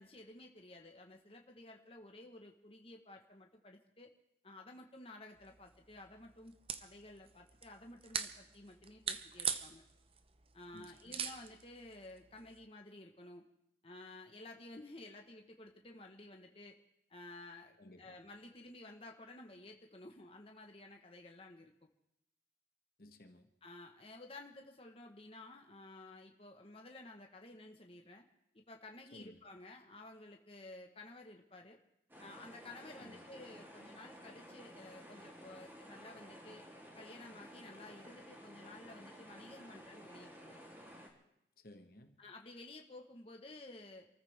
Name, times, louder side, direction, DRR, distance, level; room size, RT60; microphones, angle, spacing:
voice 1, 0.0-4.1 4.4-9.8 10.5-13.4 13.8-16.7 17.1-21.7 23.6-28.2 28.5-31.8 32.2-36.6 36.9-40.7 42.2-44.1, left 2 dB, 35° left, 2 dB, 1.4 m, -53 dB
sound 1, 5.4-12.6, right 7 dB, 30° right, 0.8 m, -44 dB
voice 2, 10.7-11.2 17.8-18.2 23.0-23.5 29.1-29.4 33.0-33.2 41.6-42.2, left 1 dB, 55° left, 6 dB, 1.5 m, -57 dB
sound 2, 32.1-41.1, equal, 10° right, 3.2 m, -54 dB
28.0 x 14.5 x 3.6 m, 0.81 s
head